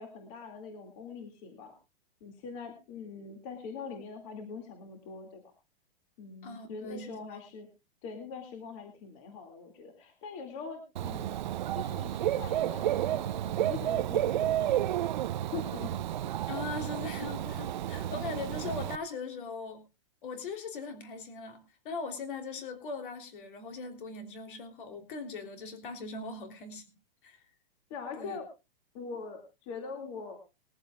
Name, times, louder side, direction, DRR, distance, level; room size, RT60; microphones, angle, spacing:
voice 1, 0.0-1.7 2.2-5.4 6.2-7.7 8.0-11.4 11.7-15.0 15.5-15.9 27.9-28.4 28.9-30.4, left 5 dB, 30° left, 5 dB, 2.3 m, -43 dB
voice 2, 6.4-7.4 16.5-19.8 20.2-26.8 27.2-27.4 28.2-28.4, left 4 dB, 55° left, 7 dB, 3.3 m, -40 dB
Dog / Bird, 11.0-19.0, right 12 dB, 50° right, 0.6 m, -31 dB
20.5 x 14.0 x 2.3 m, 0.28 s
hypercardioid pair, 170°, 31 cm